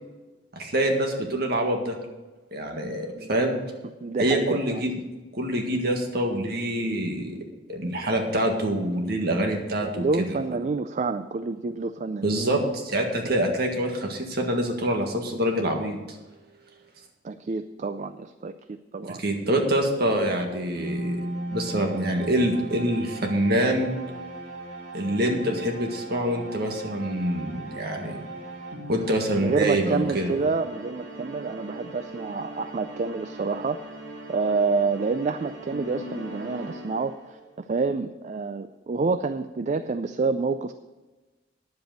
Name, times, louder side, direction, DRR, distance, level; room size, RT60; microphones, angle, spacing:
voice 1, 0.5-2.0 2.5-3.6 4.2-5.0 5.3-7.4 7.7-10.4 12.2-16.0 19.1-21.2 21.5-23.9 24.9-28.2 28.9-30.4, right 1 dB, 55° right, 2 dB, 1.8 m, -25 dB
voice 2, 4.0-4.9 9.8-12.7 13.2-13.3 17.2-19.2 29.4-33.8 34.3-40.7, right 4 dB, 40° right, 10 dB, 0.4 m, -28 dB
sound 1, 20.7-37.5, right 1 dB, 75° right, 2.9 m, -38 dB
10.0 x 7.8 x 6.5 m, 1.2 s
head